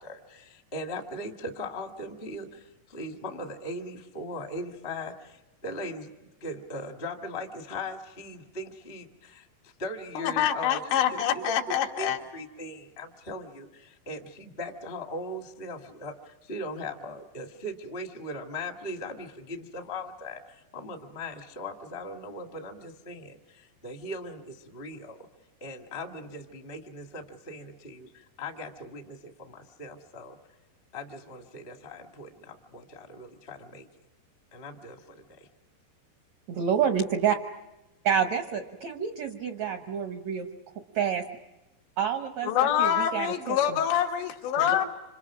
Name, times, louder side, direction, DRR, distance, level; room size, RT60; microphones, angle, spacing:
voice 1, 0.0-10.8 11.1-11.4 12.0-25.3 25.6-30.4 30.9-33.9 34.5-35.5, left 1 dB, 60° left, 4 dB, 0.6 m, -39 dB
voice 2, 10.2-12.2 42.4-44.8, left 10 dB, 90° left, 2 dB, 4.1 m, -26 dB
voice 3, 36.5-37.3 38.0-40.5 41.0-41.2 42.0-43.8 44.6-44.8, right 8 dB, 85° right, 6 dB, 1.5 m, -28 dB
28.5 x 27.0 x 6.1 m, 1.1 s
omnidirectional pair, 4.9 m